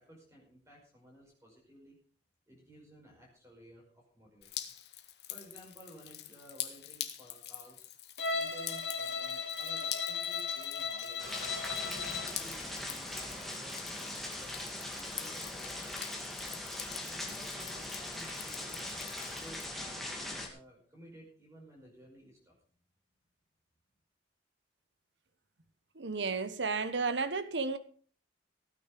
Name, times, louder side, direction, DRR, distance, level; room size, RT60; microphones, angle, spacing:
voice 1, 0.0-2.0 2.5-4.6 5.3-7.9 8.3-11.3 11.7-16.2 16.9-18.9 19.2-22.6, equal, 15° right, -2 dB, 5.2 m, -55 dB
Drip, 4.4-19.7, left 12 dB, 65° left, 1.7 m, -46 dB
Bowed string instrument, 8.2-12.4, left 5 dB, 80° left, 2.3 m, -36 dB
sound 1, 11.2-20.5, left 1 dB, ahead, 2.6 m, -41 dB
voice 2, 25.9-27.8, right 4 dB, 80° right, 12 dB, 1.1 m, -32 dB
16.5 x 9.4 x 5.2 m, 0.44 s
head